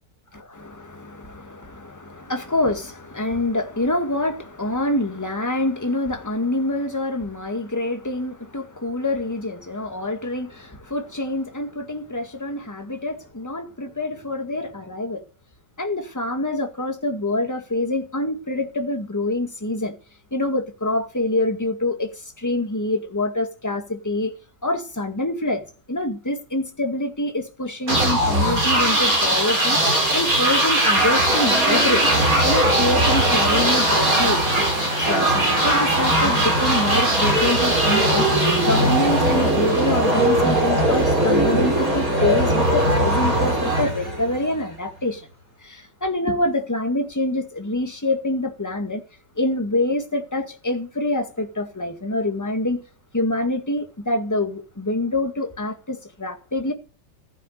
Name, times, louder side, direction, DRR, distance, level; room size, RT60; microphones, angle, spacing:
voice 1, 0.6-15.2 15.8-20.0 20.3-24.3 24.6-29.8 30.1-32.0 32.4-34.6 35.0-38.3 38.6-45.3 45.6-49.0 49.4-52.8 53.1-56.7, left 1 dB, 10° left, 1.9 m, -26 dB
sound 1, 27.9-44.6, right 1 dB, 50° right, 7.4 m, -19 dB
15.5 x 9.4 x 6.7 m
omnidirectional pair, 1.8 m